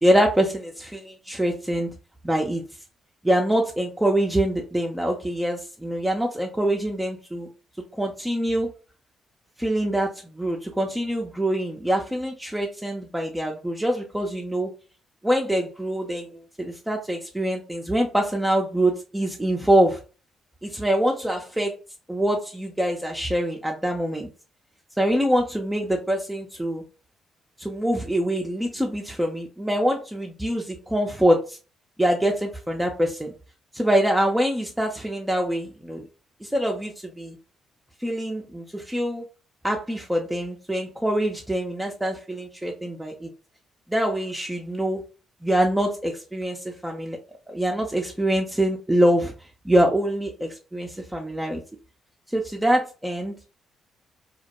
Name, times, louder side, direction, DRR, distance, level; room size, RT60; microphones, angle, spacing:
voice 1, 0.0-1.9 2.2-2.6 3.2-7.5 7.9-8.7 9.6-14.7 15.2-20.0 20.6-21.7 22.1-24.3 25.0-26.8 27.6-31.6 32.0-33.3 33.7-36.0 36.4-37.4 38.0-39.2 39.6-43.3 43.9-45.0 45.4-47.2 47.5-49.3 49.6-51.6 52.3-53.4, right 1 dB, 10° right, 1 dB, 0.5 m, -24 dB
2.2 x 2.0 x 2.8 m, 0.33 s
hypercardioid pair, 50°, 0 cm